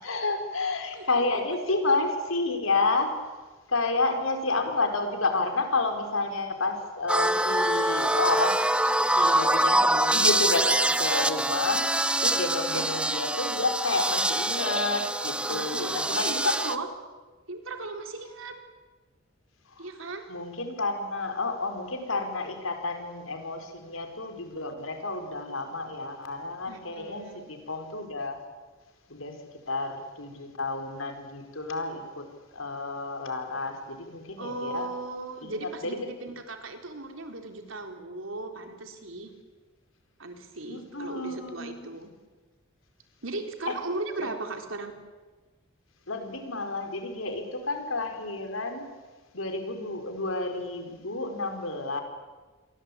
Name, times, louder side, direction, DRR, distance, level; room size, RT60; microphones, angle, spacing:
voice 1, 0.0-8.6 9.2-16.6 19.8-19.9 20.3-28.4 29.1-29.4 29.7-32.3 32.5-34.9 35.4-35.9 40.7-41.8 43.7-43.8 44.2-44.3 46.1-48.9 49.3-52.0, left 3 dB, 80° left, 5 dB, 4.9 m, -30 dB
voice 2, 0.9-1.6 12.2-12.9 15.4-16.9 17.5-18.6 19.8-20.2 26.7-27.5 34.4-39.3 40.2-42.1 43.2-44.9, right 2 dB, 75° right, 5 dB, 3.9 m, -37 dB
sound 1, 7.1-16.8, right 1 dB, 5° right, 0.9 m, -25 dB
28.0 x 22.5 x 8.7 m, 1.3 s
head